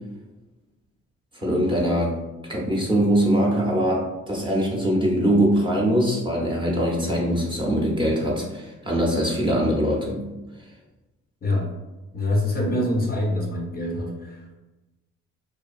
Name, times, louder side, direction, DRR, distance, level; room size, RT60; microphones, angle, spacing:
voice 1, 1.3-2.1 2.5-10.3, equal, 15° right, -4 dB, 0.6 m, -22 dB
voice 2, 11.4-11.7 12.1-14.6, left 1 dB, 30° left, -1 dB, 0.5 m, -25 dB
2.4 x 2.2 x 2.4 m, 1.1 s
cardioid pair, 90°, 30 cm